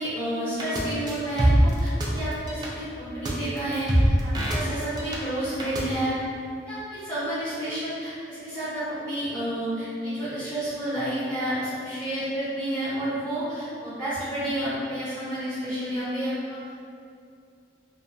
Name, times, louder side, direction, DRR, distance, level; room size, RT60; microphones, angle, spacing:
voice 1, 0.0-6.1 6.7-16.7, right 1 dB, 10° left, -15 dB, 0.8 m, -30 dB
sound 1, 0.6-0.8 1.1-2.1 2.3-2.7 3.3-3.4 3.6-5.2 5.4-5.8, right 1 dB, 25° right, 0.3 m, -22 dB
2.5 x 2.2 x 2.5 m, 2.4 s
head